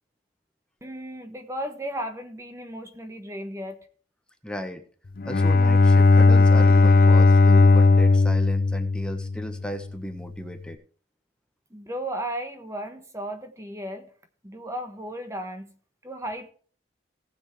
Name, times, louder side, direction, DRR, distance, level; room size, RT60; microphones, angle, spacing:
voice 1, 0.8-3.9 11.7-14.1 14.4-15.7 16.0-16.5, right 1 dB, 15° right, 1.3 m, -35 dB
voice 2, 4.4-4.8 5.2-10.8, equal, 5° left, 1.4 m, -35 dB
Bowed string instrument, 5.2-9.7, left 3 dB, 50° left, 0.6 m, -17 dB
19.0 x 7.2 x 3.3 m
head